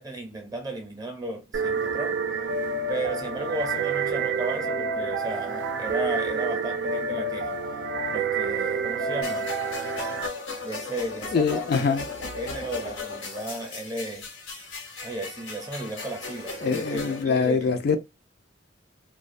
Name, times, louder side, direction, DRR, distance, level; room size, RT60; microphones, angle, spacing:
voice 1, 0.0-2.2 2.9-7.6 8.1-9.5 10.6-11.7 12.1-14.3 15.0-17.7, right 2 dB, 20° right, 0.7 m, -34 dB
sound 1, 1.5-10.3, right 4 dB, 65° right, 0.4 m, -28 dB
sound 2, 9.2-17.2, left 3 dB, 90° left, 1.0 m, -37 dB
voice 2, 11.3-12.0 16.6-18.0, left 5 dB, 55° left, 0.4 m, -24 dB
2.4 x 2.1 x 2.4 m
head